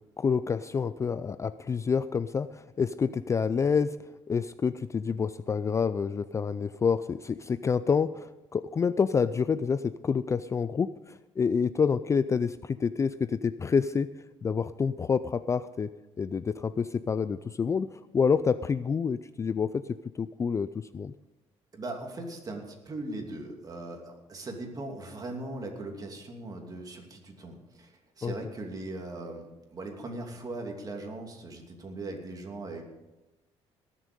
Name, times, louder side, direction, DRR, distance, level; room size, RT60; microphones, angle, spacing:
voice 1, 0.2-4.0 4.3-14.1 14.4-15.9 16.2-19.8 20.2-21.1 28.2-28.3, left 6 dB, 25° left, 15 dB, 0.3 m, -28 dB
voice 2, 21.7-32.8, right 2 dB, 35° right, 2 dB, 2.8 m, -39 dB
19.5 x 7.5 x 5.3 m, 1.0 s
cardioid pair, 105°, 11 cm